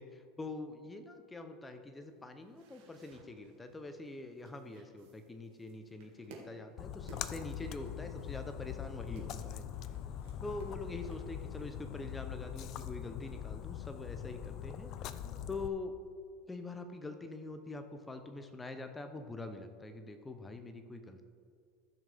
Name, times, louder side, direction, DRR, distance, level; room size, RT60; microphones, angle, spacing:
voice 1, 0.0-9.7 10.4-14.9 15.5-15.9 16.5-21.2, left 2 dB, 10° left, 7 dB, 0.7 m, -44 dB
sound 1, 1.9-11.2, right 3 dB, 75° right, 1.9 m, -60 dB
Splash splatter, 6.8-15.7, left 10 dB, 45° left, 0.4 m, -42 dB
14.5 x 6.3 x 3.5 m, 2.3 s
supercardioid pair, 130°, 0 cm